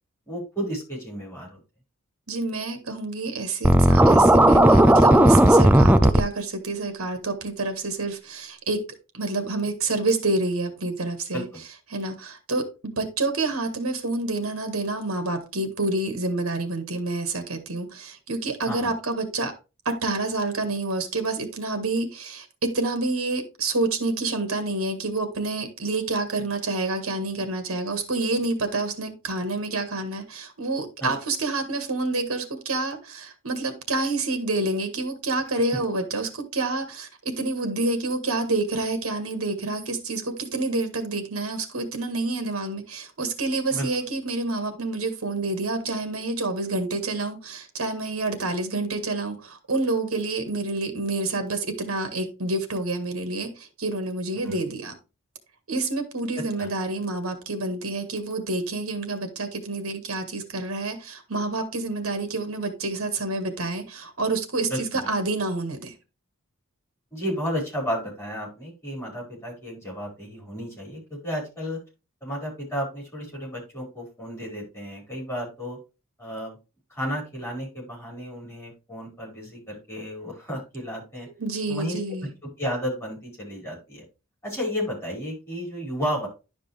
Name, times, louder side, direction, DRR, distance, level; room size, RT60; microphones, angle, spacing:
voice 1, 0.3-1.6 11.3-11.4 18.6-18.9 31.0-31.1 35.7-35.8 43.7-43.9 54.4-54.6 56.6-56.7 64.7-65.1 67.1-71.8 72.2-75.8 76.2-76.5 76.9-81.3 81.7-82.3 82.6-84.0 84.4-86.3, equal, 10° left, 5.1 m, -32 dB
voice 2, 2.3-8.8 9.1-11.5 11.9-19.5 19.9-54.9 55.7-65.9 81.4-82.3, right 2 dB, 80° right, 1.8 m, -28 dB
Scratching (performance technique), 3.6-6.2, right 1 dB, 10° right, 0.4 m, -14 dB
11.0 x 5.3 x 3.4 m
head